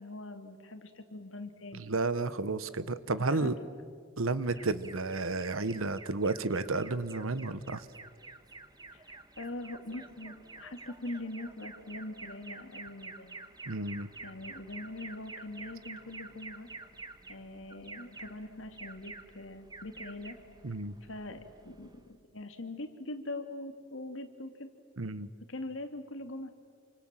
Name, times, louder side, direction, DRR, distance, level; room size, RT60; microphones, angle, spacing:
voice 1, 0.0-1.9 3.1-3.7 4.4-4.7 8.9-13.5 14.2-16.7 17.3-20.4 21.0-21.4 21.6-21.9 22.3-24.7 25.5-26.5, left 2 dB, 70° left, 6 dB, 2.5 m, -42 dB
voice 2, 1.7-3.6 4.2-7.8 13.7-14.1 20.6-20.9 25.0-25.3, right 3 dB, 85° right, 14 dB, 1.2 m, -32 dB
Alarm, 4.5-22.2, right 3 dB, 20° right, 1.4 m, -49 dB
28.5 x 25.5 x 7.6 m, 2.1 s
head